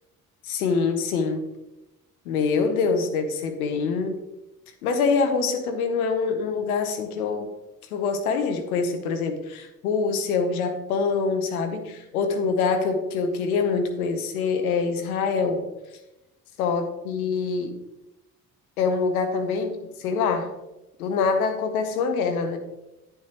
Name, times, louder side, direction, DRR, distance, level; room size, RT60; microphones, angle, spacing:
voice 1, 0.4-1.4 2.2-4.1 4.8-7.5 7.9-15.6 16.6-17.7 18.8-20.5 21.0-22.6, left 5 dB, 90° left, 6 dB, 0.9 m, -25 dB
9.2 x 7.8 x 2.9 m, 0.97 s
hypercardioid pair, 45°, 42 cm